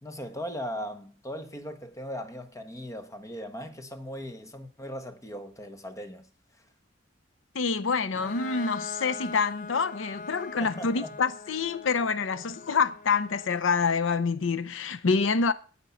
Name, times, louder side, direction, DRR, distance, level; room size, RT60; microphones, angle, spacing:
voice 1, 0.0-6.3 10.6-11.2, equal, 15° left, 1.3 m, -38 dB
voice 2, 7.5-15.5, left 5 dB, 90° left, 0.7 m, -27 dB
Bowed string instrument, 8.1-13.7, left 4 dB, 40° left, 0.5 m, -42 dB
9.1 x 8.8 x 7.0 m
head